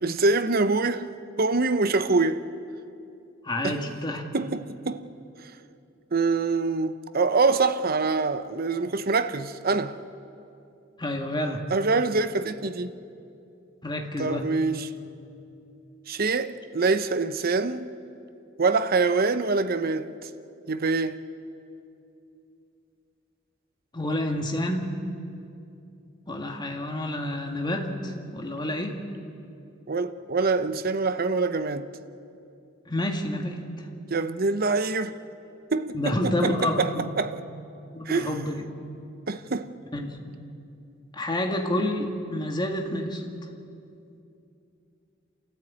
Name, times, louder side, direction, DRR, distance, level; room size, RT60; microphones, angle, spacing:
voice 1, 0.0-2.4 3.6-3.8 4.3-5.1 6.1-9.9 11.7-12.9 14.2-14.9 16.1-17.9 18.6-20.3 20.7-21.2 29.9-31.9 34.1-35.1 35.7-37.4 38.1-38.3 39.3-39.7, right 3 dB, 50° right, 0.8 m, -25 dB
voice 2, 3.4-4.2 11.0-11.6 13.8-14.5 23.9-25.0 26.3-29.0 32.9-33.9 35.9-37.1 37.9-38.7 39.9-40.2 41.1-43.2, left 1 dB, 25° left, 2.0 m, -29 dB
28.5 x 14.0 x 8.6 m
head